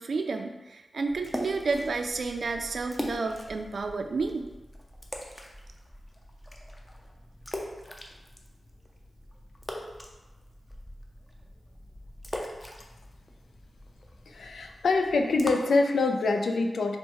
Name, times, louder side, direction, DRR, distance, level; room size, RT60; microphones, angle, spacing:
voice 1, 0.0-4.5, right 3 dB, 65° right, 5 dB, 0.4 m, -31 dB
sound 1, 1.1-15.5, left 1 dB, 15° left, 0.6 m, -42 dB
voice 2, 14.3-17.0, left 3 dB, 85° left, 4 dB, 0.4 m, -25 dB
4.3 x 2.1 x 4.6 m, 1.1 s
wide cardioid pair, 80°, 0 cm